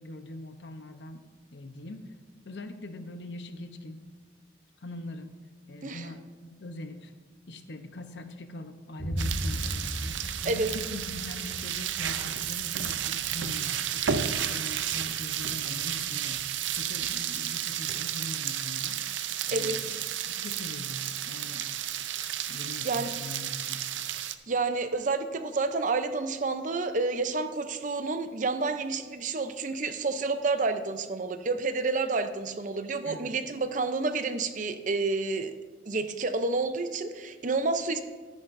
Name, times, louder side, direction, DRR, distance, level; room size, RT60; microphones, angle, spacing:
voice 1, 0.0-2.1 2.4-4.0 4.8-5.4 5.7-7.1 7.5-16.5 16.7-21.7 22.5-23.9 33.0-33.3, left 1 dB, 70° left, 8 dB, 0.8 m, -42 dB
Boom, 9.0-16.8, equal, 90° left, 2.2 m, -38 dB
sound 1, 9.2-24.3, right 10 dB, 85° right, 0.5 m, -32 dB
voice 2, 24.5-35.5 35.9-38.0, right 3 dB, 45° right, 9 dB, 0.6 m, -29 dB
13.0 x 10.0 x 2.6 m, 1.5 s
head